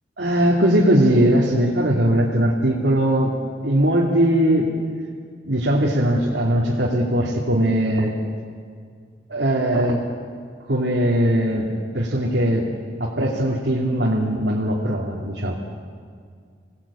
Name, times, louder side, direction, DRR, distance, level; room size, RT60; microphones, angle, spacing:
voice 1, 0.2-3.4 3.6-4.7 5.4-8.1 9.3-10.1 10.7-12.7 13.0-15.5, right 1 dB, 75° right, -4 dB, 2.9 m, -20 dB
27.5 x 19.0 x 8.7 m, 2.1 s
head